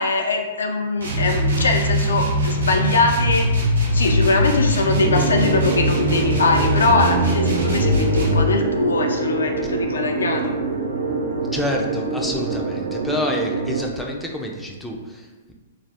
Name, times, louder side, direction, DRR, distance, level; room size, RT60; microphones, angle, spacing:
voice 1, 0.0-3.5 3.9-10.6, left 3 dB, 80° left, 4 dB, 0.4 m, -21 dB
sound 1, 1.0-8.5, equal, 90° right, 0.7 m, -21 dB
sound 2, 4.9-13.9, right 3 dB, 65° right, 0.4 m, -25 dB
voice 2, 11.5-15.5, left 1 dB, 5° left, 0 dB, 0.4 m, -28 dB
2.4 x 2.0 x 3.3 m, 1.2 s
hypercardioid pair, 120°, 0 cm